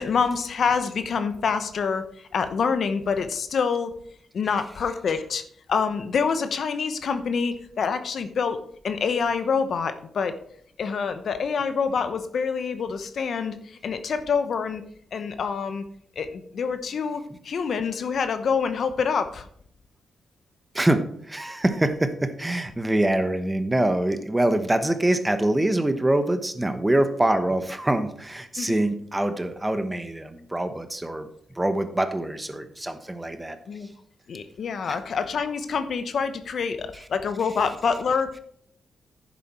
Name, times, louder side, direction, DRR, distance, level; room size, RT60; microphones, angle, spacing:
voice 1, 0.0-3.9 4.3-5.4 5.7-8.6 8.8-10.4 10.8-14.8 15.1-15.8 16.2-19.5 28.6-28.8 33.7-33.9 34.3-38.4, left 5 dB, 65° left, 10 dB, 0.8 m, -26 dB
voice 2, 20.7-31.3 31.5-33.6 34.9-35.0 36.9-37.0, right 1 dB, 15° right, 9 dB, 1.1 m, -24 dB
10.5 x 7.2 x 4.3 m, 0.65 s
cardioid pair, 65°, 0 cm